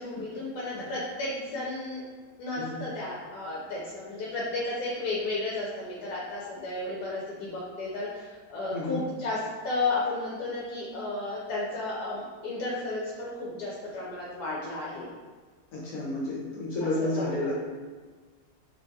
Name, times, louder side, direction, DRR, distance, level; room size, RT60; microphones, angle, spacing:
voice 1, 0.0-2.0 2.4-15.1 17.0-17.5, left 2 dB, 80° left, -5 dB, 1.1 m, -33 dB
voice 2, 2.6-2.9 8.7-9.0 15.7-17.5, left 2 dB, 65° left, -6 dB, 1.0 m, -31 dB
3.3 x 2.2 x 2.6 m, 1.5 s
omnidirectional pair, 1.7 m